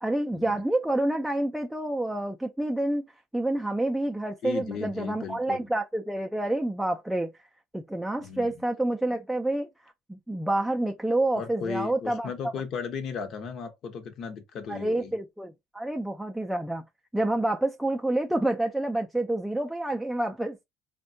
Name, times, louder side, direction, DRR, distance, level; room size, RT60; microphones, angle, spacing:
voice 1, 0.0-3.0 3.3-7.3 7.7-9.7 10.1-12.3 14.7-16.8 17.1-20.6, right 1 dB, 5° right, 0.4 m, -28 dB
voice 2, 4.4-5.7 8.2-8.6 11.3-15.1, left 6 dB, 55° left, 0.8 m, -36 dB
3.4 x 2.2 x 2.6 m
supercardioid pair, 100°, 0 cm